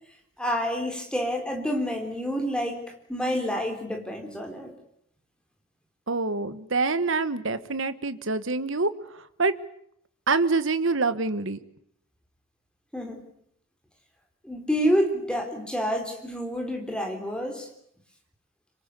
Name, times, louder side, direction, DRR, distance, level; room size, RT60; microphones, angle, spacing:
voice 1, 0.4-4.7 12.9-13.2 14.4-17.7, equal, 5° left, 3 dB, 3.7 m, -28 dB
voice 2, 6.1-8.9 9.4-9.5 10.3-11.6, right 3 dB, 60° right, 13 dB, 1.3 m, -25 dB
25.5 x 24.0 x 8.4 m, 0.71 s
head